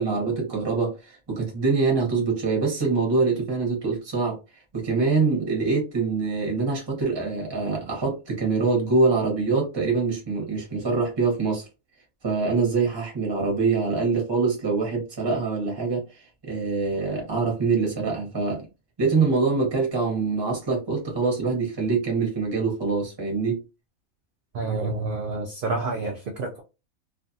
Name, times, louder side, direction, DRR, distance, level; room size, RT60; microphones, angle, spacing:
voice 1, 0.0-4.4 4.7-11.7 12.2-18.7 19.0-23.6, right 4 dB, 20° right, 0.7 m, -24 dB
voice 2, 24.5-26.6, right 3 dB, 80° right, 0.4 m, -28 dB
2.5 x 2.4 x 2.6 m
omnidirectional pair, 1.5 m